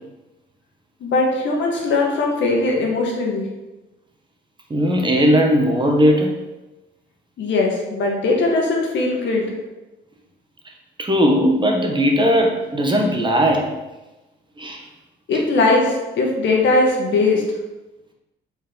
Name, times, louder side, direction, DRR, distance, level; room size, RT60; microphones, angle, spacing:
voice 1, 1.0-3.5 7.4-9.4 15.3-17.4, left 3 dB, 70° left, -1 dB, 1.5 m, -19 dB
voice 2, 4.7-6.3 11.0-13.7 14.6-14.8, equal, 25° right, 1 dB, 1.1 m, -18 dB
5.4 x 4.6 x 3.8 m, 1.1 s
cardioid pair, 90°, 20 cm